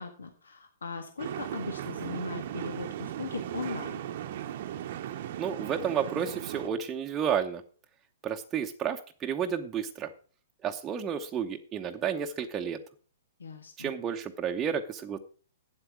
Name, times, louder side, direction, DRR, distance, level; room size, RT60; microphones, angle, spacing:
voice 1, 0.0-4.0 13.4-13.9, left 4 dB, 80° left, 6 dB, 1.6 m, -38 dB
sound 1, 1.2-6.7, right 11 dB, 50° right, 0.9 m, -37 dB
voice 2, 5.4-7.6 8.2-10.1 10.6-12.8 13.8-15.2, right 8 dB, 20° right, 2 dB, 0.8 m, -31 dB
8.9 x 7.9 x 6.1 m, 0.40 s
hypercardioid pair, 120°, 0 cm